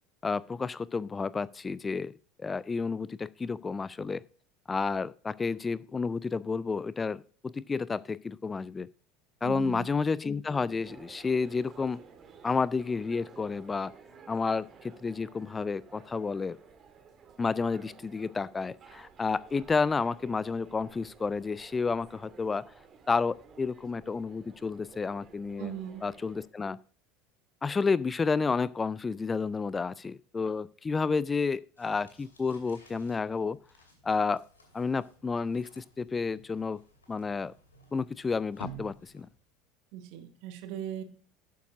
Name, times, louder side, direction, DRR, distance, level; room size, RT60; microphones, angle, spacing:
voice 1, 0.2-2.1 2.4-4.2 4.7-8.9 9.4-12.0 12.4-13.9 14.3-16.6 17.4-22.7 23.1-25.7 26.0-26.8 27.6-33.6 34.0-34.4 34.7-36.8 37.1-37.5 37.9-39.3, left 4 dB, 20° left, 21 dB, 0.4 m, -31 dB
voice 2, 9.4-9.9 25.6-26.1 39.9-41.0, right 10 dB, 55° right, 9 dB, 1.6 m, -39 dB
sound 1, 10.8-26.5, right 6 dB, 35° right, 1.8 m, -54 dB
sound 2, 31.8-39.5, right 3 dB, 80° left, 2.6 m, -52 dB
11.5 x 9.4 x 2.5 m, 0.41 s
figure-of-eight pair, 70°, 0 cm